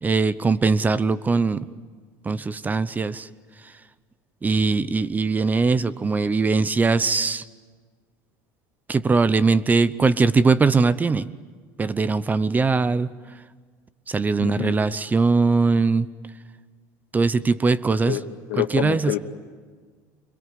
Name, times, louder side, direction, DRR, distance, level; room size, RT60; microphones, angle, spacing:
voice 1, 0.0-1.7 2.2-3.3 4.4-7.4 8.9-11.3 11.8-13.1 14.1-16.1 17.1-18.2 18.6-19.2, right 4 dB, 20° right, 17 dB, 0.8 m, -21 dB
voice 2, 14.4-14.8 18.0-19.2, left 14 dB, 80° left, 7 dB, 2.1 m, -28 dB
26.0 x 22.0 x 9.5 m, 1.5 s
supercardioid pair, 120°, 9 cm